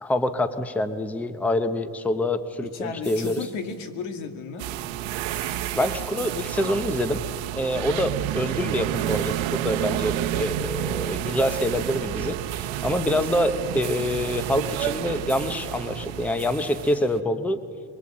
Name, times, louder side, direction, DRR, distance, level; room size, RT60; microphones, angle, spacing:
voice 1, 0.0-3.5 5.7-7.2 7.6-17.6, left 1 dB, 5° left, 11 dB, 0.7 m, -26 dB
voice 2, 2.7-4.7 7.8-8.1, left 5 dB, 80° left, 8 dB, 2.3 m, -34 dB
sound 1, 3.0-3.8 5.3-6.7 9.1-9.8 11.4-12.4, equal, 20° left, 3.9 m, -45 dB
sound 2, 4.6-17.2, right 13 dB, 70° right, 0.9 m, -30 dB
23.0 x 22.0 x 8.6 m, 2.2 s
cardioid pair, 160°, 47 cm